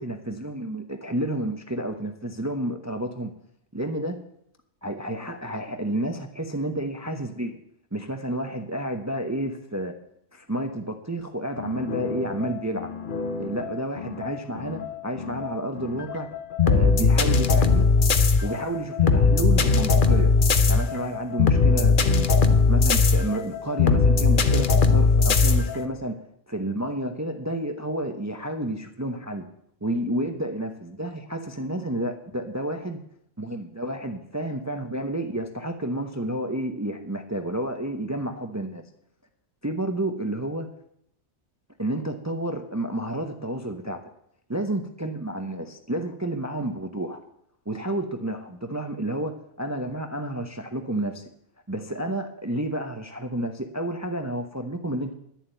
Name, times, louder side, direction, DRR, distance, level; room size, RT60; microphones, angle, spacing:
voice 1, 0.0-3.3 3.7-4.2 4.8-7.6 7.9-10.0 10.3-12.9 13.4-16.3 16.6-17.9 18.4-20.3 20.7-22.3 22.7-26.2 26.5-29.5 29.8-33.0 33.4-38.8 39.6-40.7 41.8-44.1 44.5-47.2 47.7-51.3 51.7-55.1, right 1 dB, 15° right, 6 dB, 0.8 m, -30 dB
sound 1, 11.6-25.8, left 4 dB, 45° left, 1.0 m, -20 dB
11.0 x 7.2 x 9.1 m, 0.72 s
omnidirectional pair, 1.2 m